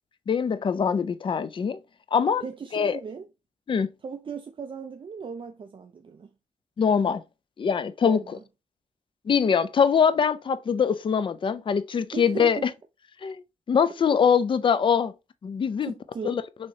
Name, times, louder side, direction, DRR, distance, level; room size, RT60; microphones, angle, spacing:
voice 1, 0.3-1.8 2.1-2.4 2.7-3.0 3.7-3.9 6.8-7.2 7.6-8.2 9.3-12.6 13.2-13.4 13.7-15.1 15.4-15.9 16.2-16.4, left 6 dB, 40° left, 0.4 m, -23 dB
voice 2, 2.4-3.3 4.0-6.3 8.0-8.4 12.1-12.7 14.1-14.2 15.8-16.4, right 5 dB, 45° right, 0.4 m, -37 dB
6.3 x 2.9 x 2.7 m
wide cardioid pair, 135°, 13 cm